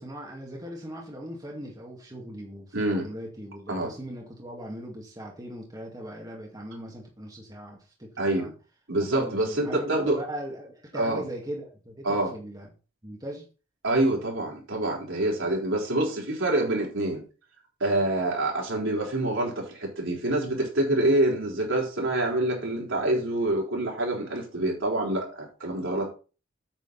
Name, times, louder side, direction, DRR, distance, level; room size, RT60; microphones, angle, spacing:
voice 1, 0.0-8.5 9.1-12.7 13.0-13.5, equal, 20° right, -2 dB, 2.1 m, -39 dB
voice 2, 2.7-3.1 3.7-3.9 8.2-8.5 8.9-10.2 10.9-11.2 12.0-12.3 13.8-17.2 17.8-26.1, right 1 dB, 65° right, -1 dB, 4.3 m, -26 dB
9.0 x 8.2 x 4.1 m, 0.35 s
head